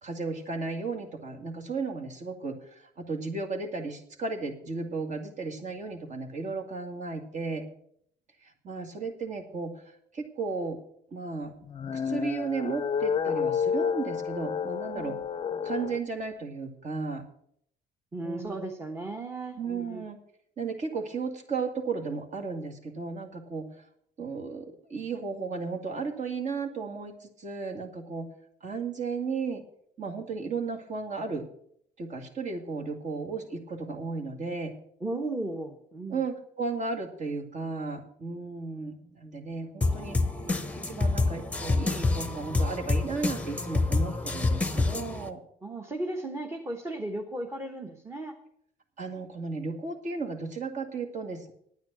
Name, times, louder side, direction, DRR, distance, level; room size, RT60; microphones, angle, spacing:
voice 1, 0.0-7.7 8.4-10.8 11.1-11.5 11.9-15.2 15.6-17.2 18.2-18.6 19.6-20.2 20.6-23.7 24.2-28.3 28.6-29.6 30.0-31.5 32.0-34.7 36.1-40.2 40.8-45.4 49.0-51.5, right 4 dB, 45° right, 3 dB, 2.2 m, -34 dB
sound 1, 11.6-16.0, left 7 dB, 30° left, 0.6 m, -30 dB
voice 2, 18.1-20.0 35.0-36.2 45.6-48.4, right 2 dB, 15° right, 3 dB, 1.2 m, -35 dB
sound 2, 39.8-45.3, left 3 dB, 10° left, 0.9 m, -27 dB
9.5 x 9.4 x 6.8 m, 0.68 s
cardioid pair, 110°, 17 cm